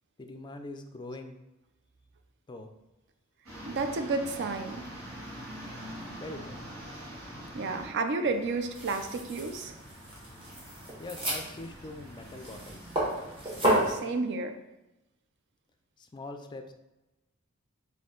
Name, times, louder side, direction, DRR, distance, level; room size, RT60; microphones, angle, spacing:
voice 1, 0.2-1.3 2.5-2.7 6.2-7.2 11.0-12.9 16.0-16.7, left 2 dB, 20° left, 6 dB, 0.3 m, -43 dB
sound 1, 3.4-7.9 8.2-13.9, equal, 85° right, 1.4 m, -45 dB
voice 2, 3.7-4.9 7.5-9.8 13.6-14.6, right 3 dB, 60° right, 7 dB, 0.4 m, -31 dB
sound 2, 8.7-14.0, right 1 dB, 25° right, 1.2 m, -33 dB
4.2 x 2.7 x 3.7 m, 0.98 s
head